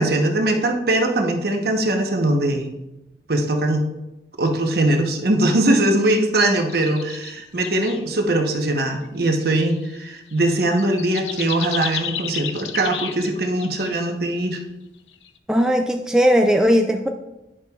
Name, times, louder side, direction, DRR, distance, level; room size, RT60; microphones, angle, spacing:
voice 1, 0.0-2.7 3.3-3.9 4.4-14.6, right 1 dB, 60° right, 2 dB, 1.0 m, -21 dB
sound 1, 6.5-7.3 7.6-8.1 8.9-9.1 9.4-13.3 13.6-14.0 15.1-15.4, left 8 dB, 90° left, 0.6 m, -32 dB
voice 2, 15.5-17.1, equal, 5° right, 2 dB, 0.3 m, -17 dB
10.0 x 7.4 x 2.4 m, 0.95 s
head